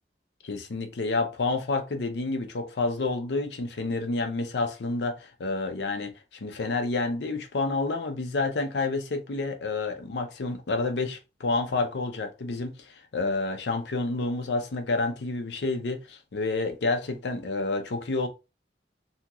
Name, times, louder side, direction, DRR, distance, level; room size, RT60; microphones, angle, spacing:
voice 1, 0.4-6.1 6.4-18.3, left 3 dB, 80° left, 0.6 m, -29 dB
2.9 x 2.8 x 2.4 m
head